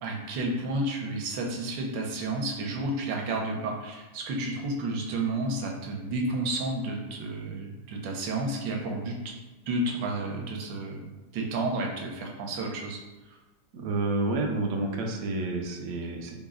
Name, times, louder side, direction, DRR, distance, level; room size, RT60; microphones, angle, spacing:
voice 1, 0.0-9.2 9.7-11.0 11.3-13.0, right 2 dB, 90° right, 1 dB, 1.3 m, -31 dB
voice 2, 13.7-16.3, right 2 dB, 70° right, 2 dB, 0.8 m, -29 dB
3.7 x 2.1 x 3.5 m, 1.2 s
omnidirectional pair, 2.0 m